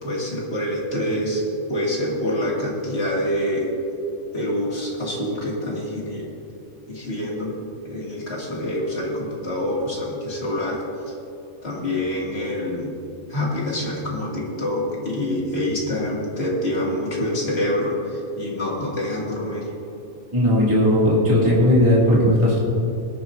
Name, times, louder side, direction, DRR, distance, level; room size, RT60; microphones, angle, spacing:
voice 1, 0.0-1.4 1.7-3.7 4.3-6.3 6.9-7.5 7.8-10.8 11.6-12.9 13.3-19.7, left 1 dB, 50° left, -4 dB, 2.5 m, -26 dB
voice 2, 20.3-22.6, left 1 dB, 20° right, -6 dB, 2.3 m, -17 dB
20.5 x 9.4 x 2.6 m, 2.8 s
omnidirectional pair, 1.4 m